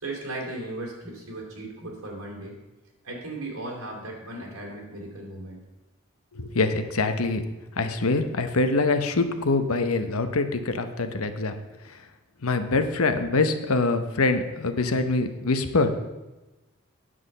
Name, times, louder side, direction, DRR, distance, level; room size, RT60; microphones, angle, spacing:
voice 1, 0.0-2.5 3.0-5.6, right 2 dB, 80° right, -1 dB, 3.0 m, -36 dB
voice 2, 6.3-7.4 7.8-11.6 12.4-15.9, left 3 dB, 80° left, 9 dB, 0.9 m, -24 dB
9.3 x 6.2 x 6.6 m, 1.1 s
head